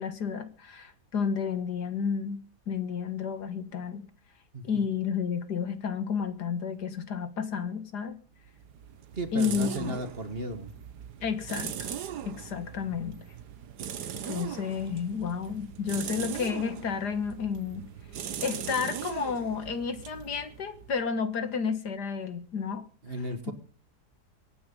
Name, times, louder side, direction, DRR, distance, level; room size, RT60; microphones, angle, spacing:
voice 1, 0.0-2.4 2.7-4.0 4.6-8.2 9.3-10.0 11.2-11.9 12.3-13.2 14.3-17.9 18.4-22.9, left 6 dB, 80° left, 2.2 m, -31 dB
voice 2, 4.5-4.9 9.1-10.7 23.0-23.5, right 1 dB, 35° right, 1.9 m, -35 dB
sound 1, 8.4-21.1, right 9 dB, 85° right, 1.6 m, -40 dB
23.5 x 9.4 x 5.5 m
omnidirectional pair, 1.7 m